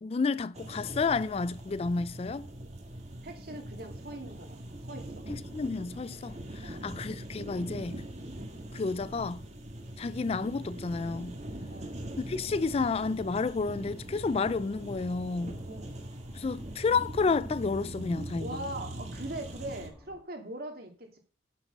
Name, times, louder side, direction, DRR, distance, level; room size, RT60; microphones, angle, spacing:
voice 1, 0.0-2.5 5.3-8.0 8.7-9.4 10.0-11.4 12.2-15.6 16.3-18.5, left 4 dB, 35° left, 0.3 m, -31 dB
sound 1, 0.5-19.9, right 1 dB, 40° right, 1.8 m, -42 dB
voice 2, 3.2-5.2 6.6-6.8 11.7-12.0 15.7-16.0 18.4-21.2, right 1 dB, 55° right, 2.4 m, -41 dB
sound 2, 11.6-20.2, equal, 5° right, 1.2 m, -55 dB
8.5 x 7.2 x 5.3 m
head